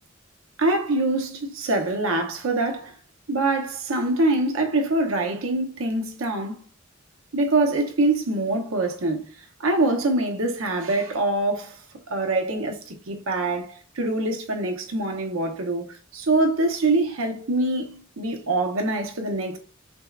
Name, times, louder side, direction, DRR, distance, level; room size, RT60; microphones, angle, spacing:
voice 1, 0.6-2.9 3.3-6.6 7.3-9.2 9.6-11.8 12.1-15.9 16.1-19.6, right 2 dB, 90° right, 0.8 m, -24 dB
6.3 x 2.2 x 2.4 m
head